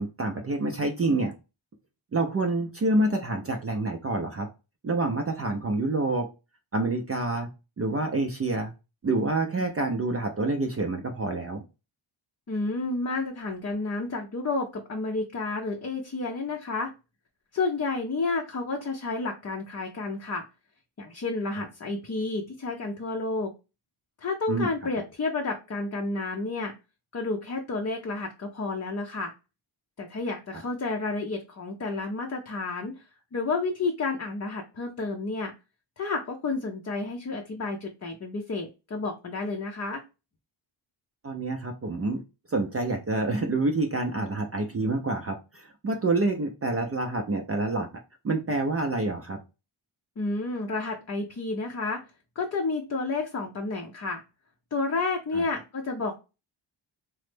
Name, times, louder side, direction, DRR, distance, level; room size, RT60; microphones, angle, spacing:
voice 1, 0.0-1.3 2.1-4.5 4.8-6.3 6.7-7.5 7.8-8.7 9.0-11.6 24.5-24.7 41.2-42.2 42.5-47.9 48.2-49.4 55.3-55.4, right 2 dB, 30° right, 3 dB, 0.4 m, -27 dB
voice 2, 12.5-16.9 17.5-20.4 21.0-23.5 24.2-26.7 27.1-29.3 30.0-32.9 33.3-35.5 36.0-40.0 50.2-52.0 52.4-54.2 54.7-56.2, left 3 dB, 35° left, 2 dB, 0.5 m, -30 dB
3.0 x 2.0 x 3.2 m, 0.28 s
cardioid pair, 75°, 48 cm